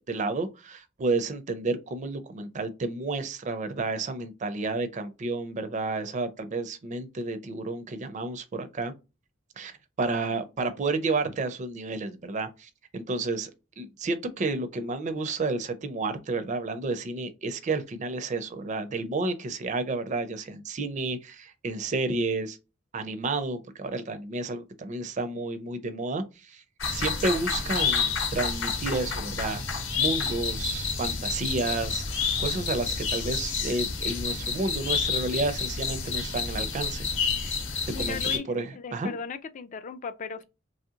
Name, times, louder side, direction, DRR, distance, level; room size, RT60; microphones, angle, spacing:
voice 1, 0.1-8.9 9.6-13.5 13.8-22.6 22.9-26.6 26.9-29.6 29.9-37.1 37.4-37.5 38.0-38.2 38.5-39.1, right 3 dB, 35° right, 0.4 m, -31 dB
sound 1, 26.8-38.4, left 5 dB, 70° left, 0.8 m, -29 dB
voice 2, 37.9-40.4, left 5 dB, 40° left, 0.4 m, -37 dB
3.1 x 2.7 x 2.3 m
head